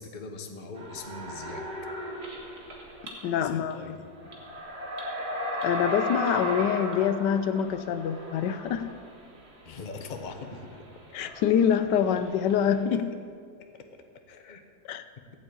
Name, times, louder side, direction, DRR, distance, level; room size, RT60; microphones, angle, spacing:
voice 1, 0.0-1.6 3.4-4.5 9.6-10.8 12.9-13.0 13.7-13.8 14.3-14.6, left 4 dB, 35° left, 5 dB, 0.8 m, -42 dB
sound 1, 0.7-3.4 3.7-3.8 4.2-12.8, equal, 65° right, 2.4 m, -36 dB
voice 2, 3.2-4.0 5.6-8.8 11.1-13.0 14.9-15.0, left 8 dB, 85° left, 11 dB, 1.3 m, -25 dB
15.5 x 5.4 x 8.8 m, 2.3 s
omnidirectional pair, 1.9 m